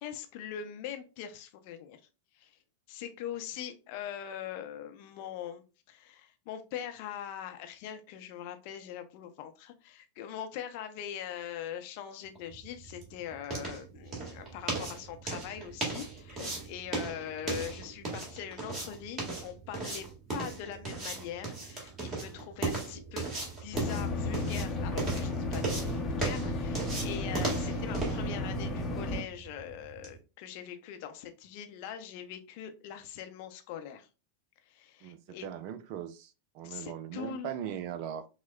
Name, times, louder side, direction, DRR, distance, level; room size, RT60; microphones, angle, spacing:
voice 1, 0.0-2.0 2.3-2.6 2.9-34.1 34.6-35.5 36.6-37.5, left 9 dB, 45° left, 0.6 m, -42 dB
sound 1, 12.4-30.2, right 3 dB, 25° right, 1.8 m, -37 dB
sound 2, 23.7-29.2, left 2 dB, 15° left, 0.8 m, -33 dB
voice 2, 35.0-38.3, right 9 dB, 45° right, 0.4 m, -39 dB
5.9 x 2.1 x 2.3 m
figure-of-eight pair, 90°, 0 cm